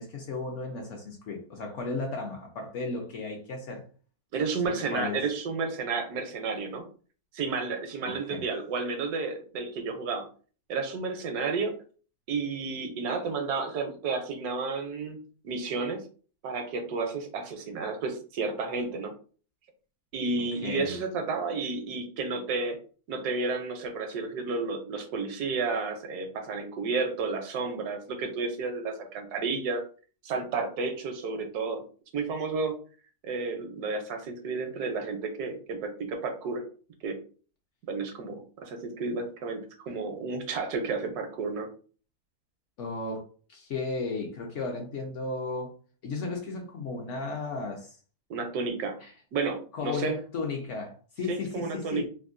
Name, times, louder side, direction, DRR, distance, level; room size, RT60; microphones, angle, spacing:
voice 1, 0.0-3.8 4.7-5.3 8.1-8.4 20.6-21.0 42.8-45.7 46.0-48.0 49.0-49.1 49.7-52.1, left 3 dB, 65° left, 0.8 m, -34 dB
voice 2, 4.3-6.8 7.3-10.3 10.7-11.7 12.3-16.0 16.4-19.1 20.1-22.8 23.1-29.8 30.2-31.8 32.1-32.8 33.2-36.6 37.0-37.2 37.8-41.7 48.3-49.0 49.3-50.1 51.3-52.1, right 4 dB, 80° right, 1.2 m, -31 dB
3.5 x 2.2 x 2.5 m
omnidirectional pair, 1.7 m